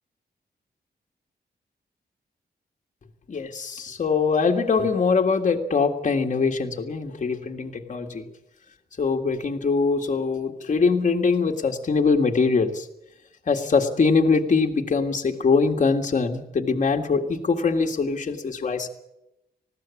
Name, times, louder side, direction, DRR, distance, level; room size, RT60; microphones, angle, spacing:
voice 1, 3.3-8.2 9.0-12.9 13.5-18.9, left 4 dB, 45° left, 2 dB, 1.9 m, -23 dB
20.0 x 16.0 x 8.5 m, 0.86 s
wide cardioid pair, 125°, 17 cm